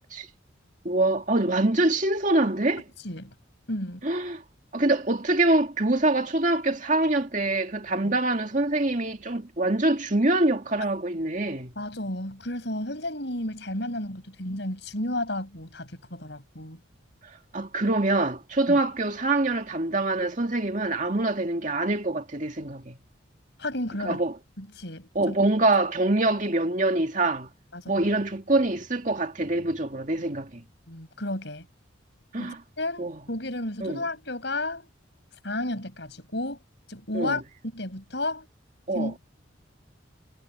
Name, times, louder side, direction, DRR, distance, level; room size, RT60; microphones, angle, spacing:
voice 1, 0.8-2.8 4.0-4.4 4.7-11.7 17.5-23.0 24.0-24.4 25.1-27.5 27.9-30.6 32.3-32.6 33.0-33.2 33.8-34.0 37.1-37.4 38.9-39.1, right 2 dB, 40° right, 2.4 m, -25 dB
voice 2, 3.7-4.1 8.0-8.1 11.8-16.8 18.7-18.8 23.6-24.2 24.6-25.3 27.7-28.1 30.9-31.7 32.4-34.9 35.4-36.6 36.9-37.4 37.7-38.5 38.9-39.2, left 1 dB, 60° left, 6.6 m, -32 dB
head